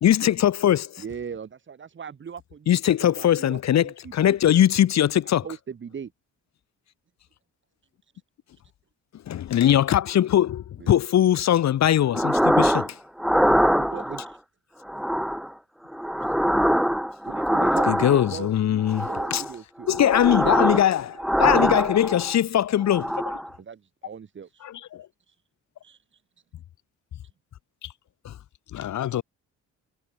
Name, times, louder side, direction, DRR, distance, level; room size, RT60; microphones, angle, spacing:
voice 1, 0.0-1.0 2.7-5.4 9.3-13.0 17.9-19.4 19.9-23.1 28.2-28.3, left 11 dB, 70° left, 1.6 m, -21 dB
voice 2, 1.0-4.4 5.4-6.1 10.8-11.0 13.7-14.4 16.3-16.4 17.2-20.9 23.6-24.7 25.3-25.4 25.8-26.2, right 7 dB, 40° right, 6.1 m, -39 dB
sound 1, 12.1-12.9 13.2-14.3 14.9-15.5 15.9-18.4 18.9-19.5 19.9-20.9 21.2-22.4 22.8-23.5, equal, ahead, 0.4 m, -23 dB
voice 3, 24.6-25.1 27.8-27.9 28.7-29.2, left 11 dB, 90° left, 4.0 m, -32 dB
wide cardioid pair, 160°, 29 cm